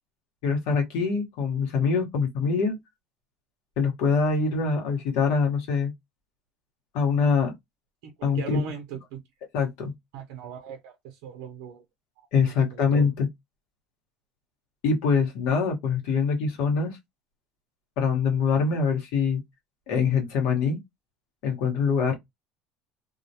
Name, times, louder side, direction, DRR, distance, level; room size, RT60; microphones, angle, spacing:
voice 1, 0.4-2.8 3.8-5.9 6.9-7.5 8.2-8.6 9.5-9.9 12.3-13.3 14.8-17.0 18.0-19.4 19.9-20.8 21.4-22.1, left 5 dB, 75° left, 1.0 m, -24 dB
voice 2, 8.0-9.2 10.1-11.8 12.2-13.1, right 7 dB, 80° right, 0.5 m, -40 dB
2.3 x 2.1 x 2.7 m
cardioid pair, 135°, 0 cm